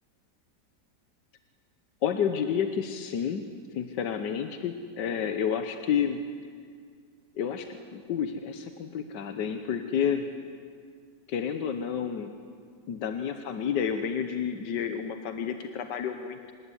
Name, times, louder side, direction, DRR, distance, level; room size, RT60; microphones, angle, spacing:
voice 1, 2.0-3.5 3.7-6.2 7.4-10.2 11.3-12.3 12.9-16.5, left 7 dB, 85° left, 7 dB, 1.7 m, -30 dB
26.0 x 19.5 x 9.9 m, 2.1 s
omnidirectional pair, 1.8 m